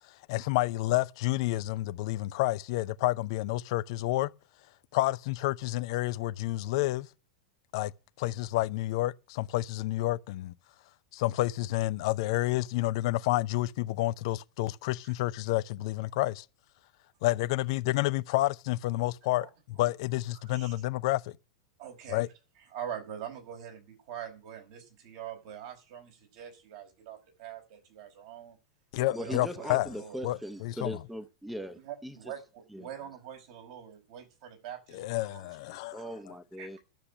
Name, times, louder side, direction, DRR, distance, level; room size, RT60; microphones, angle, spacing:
voice 1, 0.3-4.3 4.9-7.1 7.7-7.9 8.2-10.5 11.1-16.4 17.2-21.4 22.1-22.3 28.9-29.9 30.2-31.0 34.9-36.0, left 17 dB, 60° left, 0.6 m, -29 dB
voice 2, 20.4-20.7 21.8-22.3 22.7-28.6 29.0-30.2 31.8-36.1 36.6-36.8, right 9 dB, 60° right, 5.2 m, -44 dB
voice 3, 29.1-32.2 32.7-32.9 35.9-36.8, equal, 5° right, 1.0 m, -39 dB
12.0 x 6.9 x 9.1 m
hypercardioid pair, 100°, 3 cm